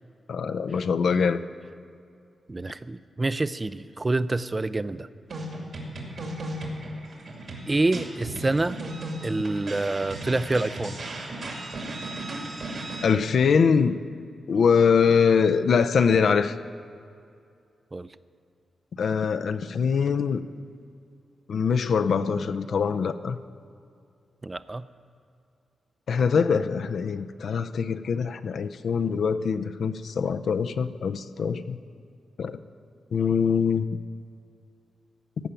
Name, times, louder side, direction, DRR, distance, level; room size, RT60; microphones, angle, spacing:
voice 1, 0.3-1.4 13.0-14.0 14.5-16.5 18.9-20.4 21.5-23.4 26.1-31.8 32.4-32.6 33.1-33.9, left 6 dB, 70° left, 0.5 m, -23 dB
voice 2, 2.5-5.1 7.7-8.8 9.2-11.0 17.9-18.1 24.4-24.9, right 2 dB, 25° right, 0.4 m, -27 dB
sound 1, 5.3-13.1, right 1 dB, 65° right, 2.4 m, -36 dB
15.0 x 5.7 x 9.0 m
cardioid pair, 80°, 0 cm